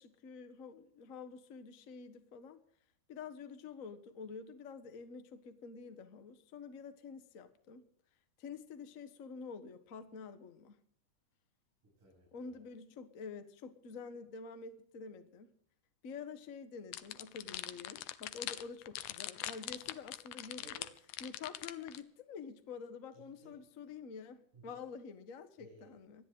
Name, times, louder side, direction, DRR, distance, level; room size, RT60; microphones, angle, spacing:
voice 1, 0.0-2.6 3.1-7.8 8.4-10.7 12.3-15.5 16.0-20.6 21.2-26.2, left 5 dB, 50° left, 9 dB, 0.9 m, -48 dB
voice 2, 11.8-12.6 19.6-19.9 20.6-21.0 23.1-23.6 24.5-24.7 25.6-26.0, right 1 dB, 80° right, -3 dB, 9.8 m, -59 dB
sound 1, 16.9-22.0, left 14 dB, 75° left, 2.1 m, -42 dB
25.5 x 10.5 x 3.8 m, 0.64 s
omnidirectional pair, 3.7 m